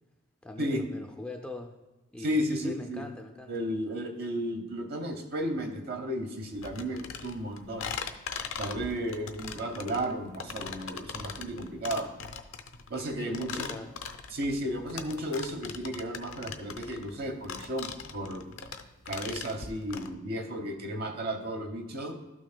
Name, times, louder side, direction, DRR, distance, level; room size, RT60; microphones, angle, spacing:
voice 1, 0.4-1.8 2.1-3.5 13.2-13.9, left 1 dB, 5° left, 2 dB, 0.4 m, -41 dB
voice 2, 2.2-3.1 3.5-8.0 8.6-12.1 12.9-13.7 14.3-18.5 19.1-22.2, equal, 45° right, 5 dB, 0.8 m, -33 dB
sound 1, 6.6-20.1, left 6 dB, 70° left, 0.5 m, -40 dB
12.0 x 6.1 x 2.2 m, 1.1 s
head